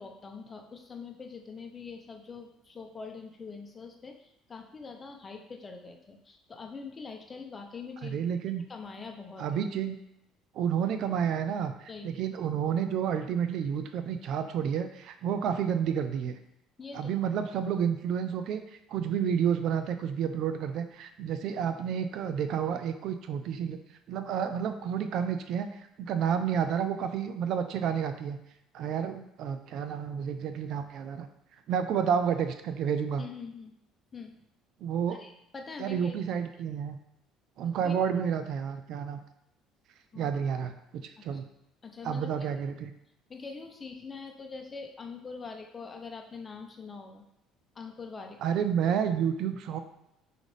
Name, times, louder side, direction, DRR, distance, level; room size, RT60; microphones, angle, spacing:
voice 1, 0.0-8.3 8.7-9.5 11.9-12.1 16.8-17.1 33.2-33.7 34.1-34.3 35.1-36.2 37.8-37.9 40.1-40.3 41.2-41.3 41.8-42.3 43.3-47.2 47.7-48.4, left 4 dB, 30° left, 3 dB, 0.7 m, -43 dB
voice 2, 8.0-8.6 9.4-10.0 10.5-16.4 16.9-23.8 24.1-28.4 28.7-31.3 31.7-33.2 34.8-35.2 35.8-37.0 37.6-39.2 40.2-41.4 42.0-42.9 48.4-49.8, right 8 dB, 60° right, 9 dB, 0.3 m, -30 dB
5.0 x 2.5 x 3.2 m, 0.79 s
hypercardioid pair, 65°, 0 cm